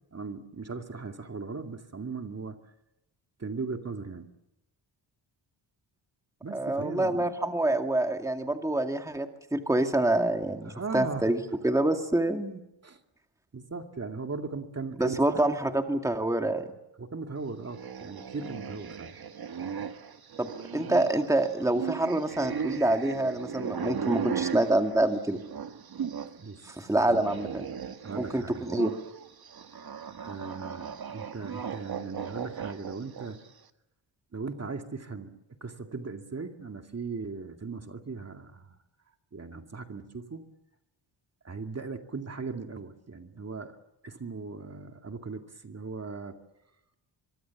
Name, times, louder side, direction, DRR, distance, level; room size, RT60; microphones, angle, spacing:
voice 1, 0.1-2.6 3.4-4.3 6.4-7.3 10.7-11.3 12.8-13.0 13.5-15.4 17.0-19.2 26.4-26.7 27.1-27.8 28.0-28.7 30.2-33.4 34.3-38.8 39.3-40.5 41.4-43.8 44.0-46.4, right 4 dB, 30° right, 5 dB, 2.3 m, -38 dB
voice 2, 6.5-12.6 15.0-16.6 20.4-25.4 26.6-27.6 28.2-28.9, right 1 dB, 5° right, 5 dB, 2.2 m, -27 dB
sound 1, 17.6-26.4 26.7-33.5, right 7 dB, 50° right, 1.7 m, -37 dB
24.5 x 24.0 x 7.2 m, 0.90 s
cardioid pair, 85°, 48 cm